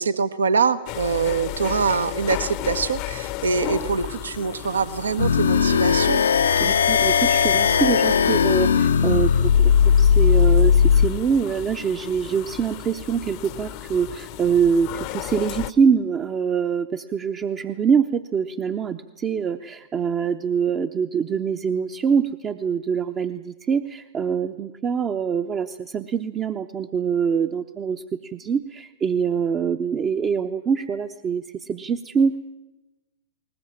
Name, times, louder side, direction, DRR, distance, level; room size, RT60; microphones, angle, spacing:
voice 1, 0.0-6.2, right 5 dB, 70° right, 13 dB, 1.1 m, -24 dB
sound 1, 0.9-15.7, left 15 dB, 40° left, 0.8 m, -35 dB
sound 2, 5.2-11.1, left 7 dB, 65° left, 0.7 m, -18 dB
voice 2, 6.6-9.7 10.0-32.4, right 6 dB, 20° right, 8 dB, 0.8 m, -24 dB
21.0 x 20.0 x 8.8 m, 1.1 s
figure-of-eight pair, 100°, 0 cm